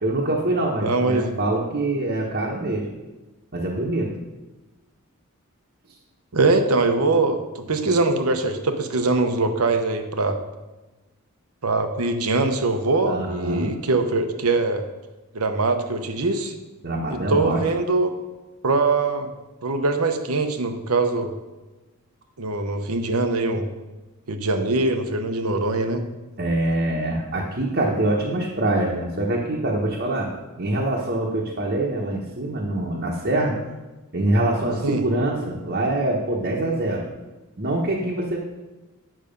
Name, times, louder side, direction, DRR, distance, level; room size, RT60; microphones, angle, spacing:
voice 1, 0.0-2.9 3.5-4.1 13.1-13.7 16.8-17.6 26.4-30.3 30.6-33.5 34.1-37.0 37.6-38.4, right 1 dB, 50° right, -3 dB, 1.1 m, -24 dB
voice 2, 0.8-1.4 6.3-10.4 11.6-14.8 15.3-16.5 17.1-18.1 18.6-19.3 19.6-21.3 22.4-23.6 24.3-26.0 34.8-35.0, right 3 dB, 85° right, 7 dB, 1.0 m, -22 dB
9.0 x 6.2 x 5.3 m, 1.1 s
head